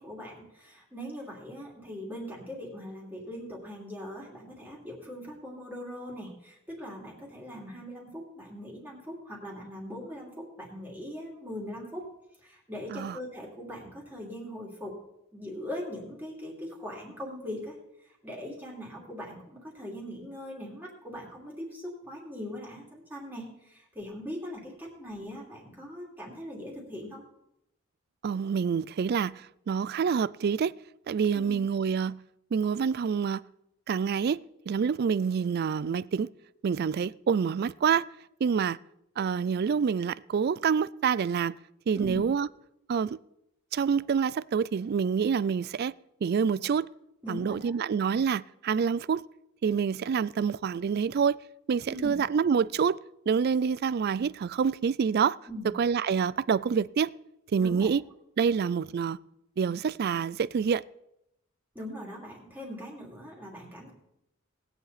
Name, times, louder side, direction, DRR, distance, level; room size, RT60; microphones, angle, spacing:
voice 1, 0.0-12.0 12.4-14.9 15.3-17.8 18.0-27.2 31.3-31.6 41.9-42.2 47.2-47.8 51.9-52.2 55.5-55.7 57.6-57.9 61.7-63.9, equal, 10° right, 2.8 m, -41 dB
voice 2, 28.2-30.7 31.1-32.2 32.5-33.4 33.9-34.4 34.7-36.3 36.6-38.0 38.4-38.8 39.2-41.5 41.9-42.5 42.9-43.2 43.7-45.9 46.2-46.9 47.3-49.2 49.6-51.4 51.7-53.0 53.3-55.4 55.8-57.1 57.5-58.0 58.4-59.2 59.6-60.8, right 6 dB, 50° right, 0.3 m, -27 dB
19.5 x 8.0 x 4.1 m
head